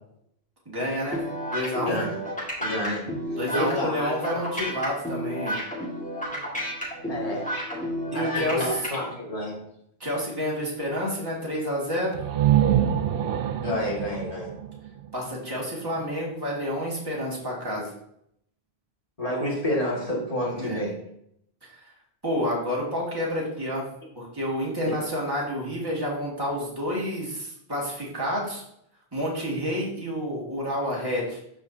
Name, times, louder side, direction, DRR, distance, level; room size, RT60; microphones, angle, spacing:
voice 1, 0.7-1.2 1.5-2.0 3.4-5.6 8.1-8.9 10.0-12.2 15.1-17.9 20.5-20.8 22.2-23.8 24.2-28.6 29.1-31.4, equal, 20° right, -5 dB, 2.0 m, -29 dB
sound 1, 1.1-9.0, equal, 5° left, 1.8 m, -31 dB
voice 2, 1.8-2.2 2.6-3.0 3.5-4.1 7.1-7.5 8.1-9.6 12.7-12.8 13.6-14.5 19.2-21.0 24.9-25.0, left 1 dB, 35° left, -4 dB, 2.1 m, -29 dB
sound 2, 12.1-15.8, right 11 dB, 65° right, 0.7 m, -25 dB
13.0 x 4.4 x 2.7 m, 0.73 s
omnidirectional pair, 1.1 m